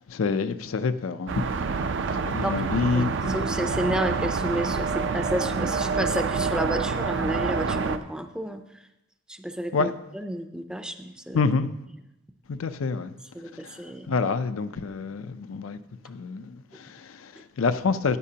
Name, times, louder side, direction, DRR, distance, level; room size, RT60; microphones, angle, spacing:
voice 1, 0.0-1.5 2.2-3.5 9.7-9.9 11.3-11.7 12.5-13.1 13.6-13.7 14.1-15.8 16.1-18.2, left 4 dB, 90° left, 0.5 m, -27 dB
sound 1, 1.3-8.0, right 4 dB, 65° right, 0.5 m, -27 dB
voice 2, 3.0-8.6 9.3-11.4 13.3-14.2, right 1 dB, 5° right, 0.4 m, -31 dB
13.5 x 9.2 x 2.8 m
head